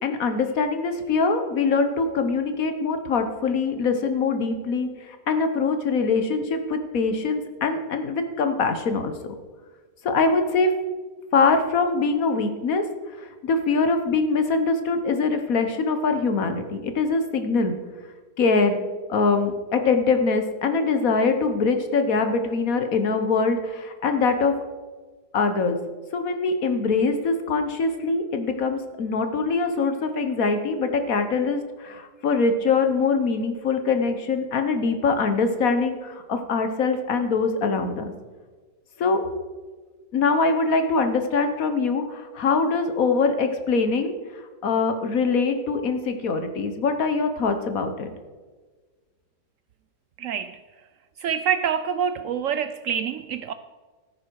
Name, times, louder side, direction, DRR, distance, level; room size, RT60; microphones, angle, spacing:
voice 1, 0.0-9.1 10.0-10.7 11.3-12.8 13.2-17.7 18.4-18.8 19.1-24.5 25.3-25.8 26.1-38.1 39.0-39.2 40.1-44.1 44.6-48.1, left 4 dB, 55° left, 1.3 m, -23 dB
voice 2, 50.2-50.6 51.2-53.5, right 8 dB, 85° right, 0.7 m, -26 dB
13.5 x 9.9 x 4.6 m
omnidirectional pair, 1.9 m